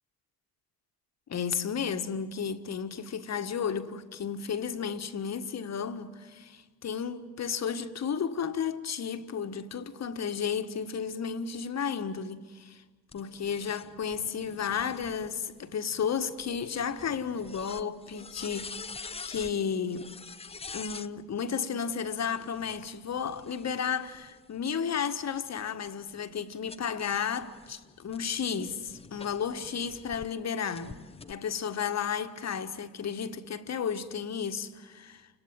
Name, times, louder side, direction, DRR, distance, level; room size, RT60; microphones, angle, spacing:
voice 1, 1.3-12.8 13.1-18.8 19.2-20.2 20.7-31.0 31.3-35.3, left 7 dB, 35° left, 1.5 m, -33 dB
sound 1, 13.1-21.1 22.3-24.6 25.2-30.3 30.7-31.3, left 4 dB, 10° left, 0.8 m, -47 dB
29.5 x 26.0 x 7.6 m
figure-of-eight pair, 55°, 48 cm